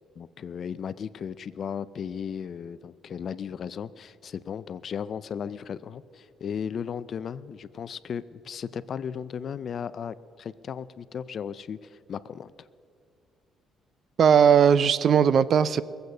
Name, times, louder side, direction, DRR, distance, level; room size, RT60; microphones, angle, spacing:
voice 1, 0.2-12.7, left 7 dB, 50° left, 16 dB, 0.4 m, -36 dB
voice 2, 14.2-15.8, right 7 dB, 50° right, 17 dB, 0.4 m, -18 dB
21.5 x 8.0 x 6.7 m, 2.2 s
cardioid pair, 120°, 0 cm